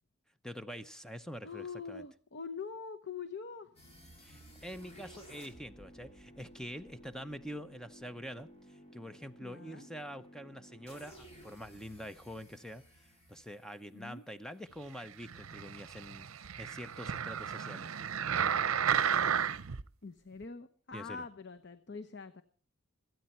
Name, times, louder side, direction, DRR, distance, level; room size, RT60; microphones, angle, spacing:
voice 1, 0.4-2.0 4.2-12.8 13.3-17.9 20.9-21.3, equal, 5° left, 0.7 m, -46 dB
voice 2, 1.4-3.7 9.4-9.9 13.9-14.2 20.0-22.4, left 5 dB, 55° left, 0.8 m, -44 dB
sound 1, 3.8-14.7, equal, 30° left, 4.3 m, -56 dB
sound 2, 15.2-19.8 20.4-20.5, right 8 dB, 80° right, 0.7 m, -33 dB
26.5 x 9.1 x 4.4 m
head